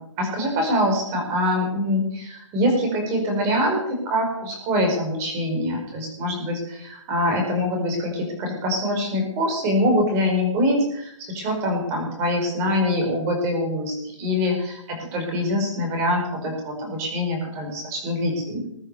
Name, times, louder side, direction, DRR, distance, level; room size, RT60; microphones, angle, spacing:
voice 1, 0.0-18.7, left 1 dB, 15° right, 3 dB, 4.7 m, -24 dB
21.0 x 9.8 x 6.8 m, 0.73 s
hypercardioid pair, 170°, 16 cm